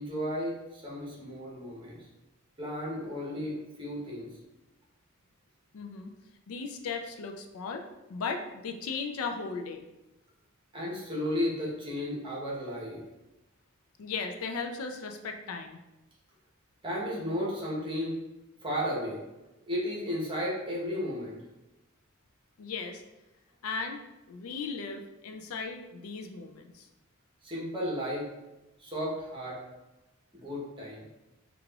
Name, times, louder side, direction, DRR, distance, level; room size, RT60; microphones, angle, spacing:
voice 1, 0.0-2.1 2.6-4.3 10.7-13.0 16.8-18.2 18.6-19.2 19.6-21.4 27.4-28.3 28.8-29.6 30.3-31.0, equal, 25° right, -5 dB, 0.9 m, -34 dB
voice 2, 5.7-6.1 6.5-7.8 8.1-9.8 14.0-15.8 22.6-23.0 23.6-26.9, left 4 dB, 80° left, 4 dB, 0.4 m, -37 dB
4.8 x 2.4 x 2.3 m, 1.0 s
head